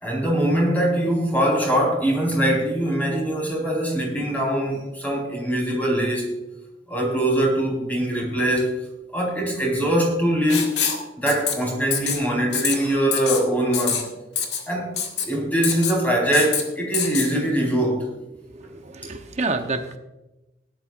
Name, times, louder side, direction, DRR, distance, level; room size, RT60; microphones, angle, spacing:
voice 1, 0.0-6.4 6.9-8.8 9.1-10.7 11.2-14.1 14.7-18.1, right 1 dB, 10° left, -2 dB, 4.3 m, -22 dB
Writing, 10.5-11.0 11.3-11.5 11.9-12.2 12.5-12.8 13.1-13.4 13.7-14.0 14.4-14.6 15.0-15.3 15.6-16.0 16.3-16.6 16.9-17.3, left 7 dB, 75° left, 1.8 m, -24 dB
voice 2, 18.5-20.0, right 3 dB, 40° right, 6 dB, 0.8 m, -28 dB
18.0 x 11.5 x 2.5 m, 1.0 s
head